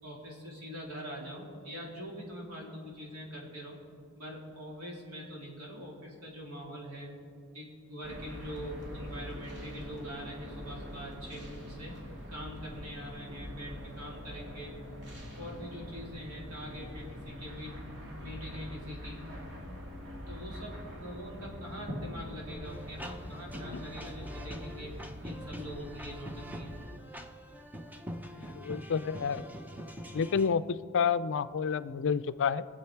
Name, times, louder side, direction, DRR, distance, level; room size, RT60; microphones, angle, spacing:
voice 1, 0.0-3.7 4.2-7.1 7.5-12.0 12.3-14.7 15.4-17.8 18.2-19.2 20.3-24.9 25.2-26.7, equal, 85° right, -2 dB, 3.1 m, -43 dB
sound 1, 8.0-26.9, equal, 55° right, 2.2 m, -44 dB
sound 2, 22.6-30.5, equal, 10° right, 0.6 m, -44 dB
voice 2, 28.4-29.4 30.1-32.6, left 6 dB, 55° left, 15 dB, 0.4 m, -29 dB
22.5 x 7.7 x 4.6 m, 2.2 s
head